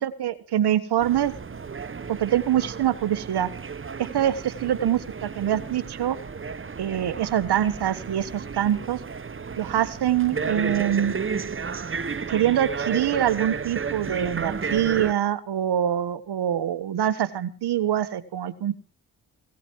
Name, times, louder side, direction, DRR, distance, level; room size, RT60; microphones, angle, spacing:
voice 1, 0.0-1.3 2.1-3.5 4.1-4.3 4.6-6.2 6.8-9.0 9.6-11.1 12.3-18.7, right 11 dB, 80° right, 12 dB, 1.4 m, -24 dB
sound 1, 1.0-15.1, right 5 dB, 30° right, 1.0 m, -33 dB
17.5 x 14.0 x 4.6 m, 0.37 s
cardioid pair, 55°, 39 cm